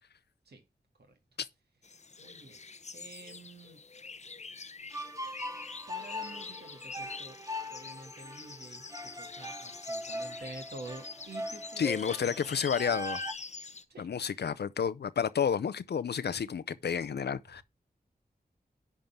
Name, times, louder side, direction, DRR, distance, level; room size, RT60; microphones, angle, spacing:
sound 1, 1.8-13.8, left 4 dB, 45° left, 0.7 m, -45 dB
voice 1, 2.2-2.6 2.9-3.8 5.9-7.4 7.7-8.9 9.2-11.9 12.2-12.9 13.9-14.1, right 2 dB, 80° right, 1.9 m, -49 dB
sound 2, 4.9-13.3, left 1 dB, 20° right, 1.0 m, -41 dB
voice 2, 11.8-13.2 14.0-17.6, left 7 dB, 85° left, 0.6 m, -31 dB
10.5 x 3.7 x 5.8 m
wide cardioid pair, 70°, 17 cm